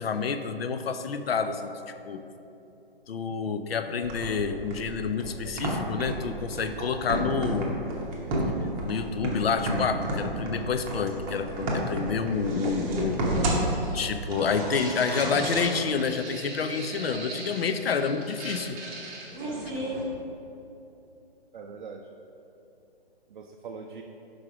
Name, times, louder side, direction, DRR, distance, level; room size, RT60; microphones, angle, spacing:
voice 1, 0.0-2.2 3.1-7.7 8.8-13.2 13.9-18.8 19.6-19.7, left 5 dB, 75° left, 9 dB, 0.5 m, -29 dB
sound 1, 4.0-20.0, right 1 dB, 20° right, 0.7 m, -32 dB
voice 2, 13.3-13.9 21.5-22.1 23.3-24.0, right 5 dB, 55° right, 1 dB, 0.5 m, -41 dB
5.3 x 4.9 x 4.7 m, 2.9 s
figure-of-eight pair, 135°, 30 cm